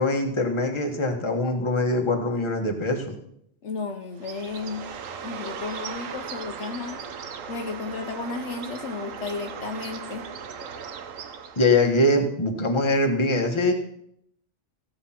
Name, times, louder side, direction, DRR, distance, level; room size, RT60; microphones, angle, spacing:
voice 1, 0.0-3.1 11.6-13.7, left 2 dB, 25° left, 3 dB, 1.3 m, -23 dB
voice 2, 3.6-4.9 5.2-7.0 7.5-10.3, left 4 dB, 65° left, 5 dB, 1.1 m, -33 dB
Bird, 4.2-11.9, right 6 dB, 80° right, 1.3 m, -37 dB
15.5 x 5.5 x 5.8 m, 0.72 s
omnidirectional pair, 1.3 m